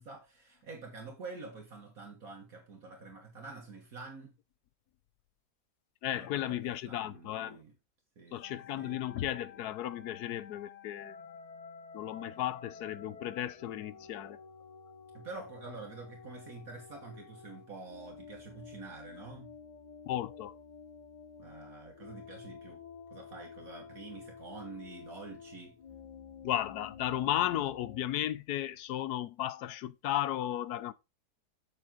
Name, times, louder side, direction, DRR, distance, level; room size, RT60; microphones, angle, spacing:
voice 1, 0.0-4.3 6.1-7.7 8.2-9.0 15.1-19.5 21.4-22.8 23.1-25.8, right 3 dB, 60° right, 1.9 m, -47 dB
voice 2, 6.0-7.6 8.3-11.2 11.9-14.4 20.1-20.5 26.4-30.9, left 12 dB, 80° left, 1.2 m, -34 dB
sound 1, 8.4-28.0, left 6 dB, 35° left, 0.6 m, -51 dB
7.5 x 7.2 x 3.7 m
omnidirectional pair, 1.7 m